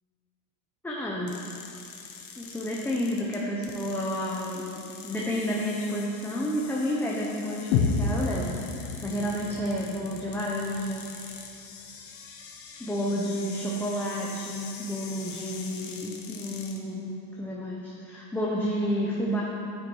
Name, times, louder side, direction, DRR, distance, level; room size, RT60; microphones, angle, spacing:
voice 1, 0.8-1.4 2.4-8.5 8.7-11.1 12.8-19.4, equal, 5° left, -5 dB, 0.9 m, -30 dB
sound 1, 1.3-16.8, left 6 dB, 35° left, 1.2 m, -45 dB
sound 2, 7.7-11.7, left 4 dB, 90° left, 1.3 m, -30 dB
9.5 x 9.4 x 4.8 m, 2.6 s
supercardioid pair, 140°, 39 cm